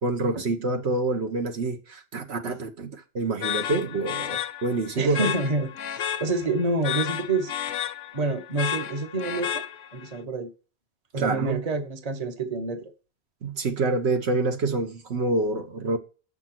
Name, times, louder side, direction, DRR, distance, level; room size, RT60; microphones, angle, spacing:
voice 1, 0.0-5.3 11.2-11.6 13.4-16.0, right 3 dB, 75° right, 1.3 m, -27 dB
sound 1, 3.4-10.1, left 10 dB, 70° left, 0.9 m, -32 dB
voice 2, 5.0-7.5 8.1-9.6 9.9-10.5 11.1-12.9, right 3 dB, 35° right, 1.0 m, -28 dB
7.4 x 6.0 x 6.0 m
omnidirectional pair, 1.1 m